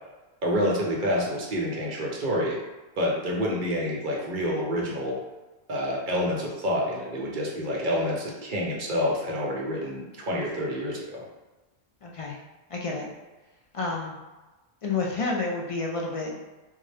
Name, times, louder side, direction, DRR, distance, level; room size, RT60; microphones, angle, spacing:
voice 1, 0.4-2.6 3.0-5.2 5.7-11.2, equal, 50° right, -2 dB, 0.8 m, -28 dB
voice 2, 12.0-12.4 12.7-13.1 13.7-14.1 14.8-16.5, left 3 dB, 55° left, -2 dB, 0.4 m, -30 dB
3.7 x 2.1 x 3.2 m, 1.2 s
omnidirectional pair, 1.1 m